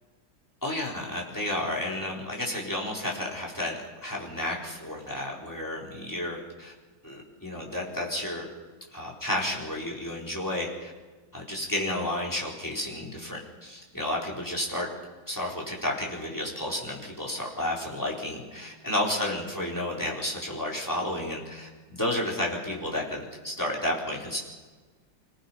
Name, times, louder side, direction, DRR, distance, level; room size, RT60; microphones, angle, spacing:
voice 1, 0.6-6.7 7.0-8.4 8.9-10.9 11.3-14.9 15.3-24.4, left 1 dB, 10° left, -3 dB, 4.4 m, -32 dB
25.5 x 19.0 x 5.8 m, 1.3 s
omnidirectional pair, 2.0 m